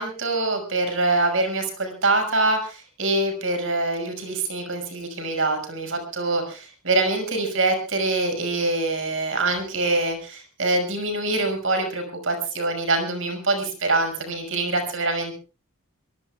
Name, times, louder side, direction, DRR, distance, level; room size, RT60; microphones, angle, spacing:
voice 1, 0.0-15.3, right 2 dB, 60° right, 6 dB, 6.0 m, -24 dB
23.5 x 23.5 x 2.4 m, 0.34 s
head